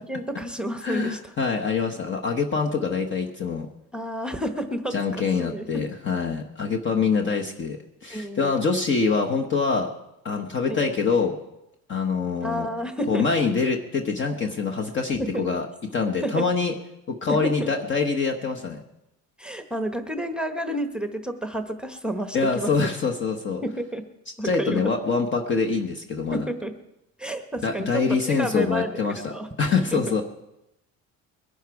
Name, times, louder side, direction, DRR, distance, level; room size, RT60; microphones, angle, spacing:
voice 1, 0.0-1.3 3.9-5.8 8.1-8.7 10.7-10.8 12.4-13.2 15.2-15.4 16.2-16.4 17.3-17.7 19.4-22.7 23.6-24.0 24.4-24.8 26.3-26.7 27.2-28.9 29.3-29.5 29.9-30.1, right 1 dB, 5° right, 6 dB, 0.9 m, -30 dB
voice 2, 0.8-3.7 4.9-9.9 10.2-11.4 11.9-12.7 13.1-15.7 15.9-16.7 17.1-18.8 22.3-23.6 24.4-26.5 27.6-30.2, left 5 dB, 35° left, 3 dB, 1.1 m, -25 dB
22.0 x 11.5 x 4.7 m, 0.90 s
cardioid pair, 150°, 31 cm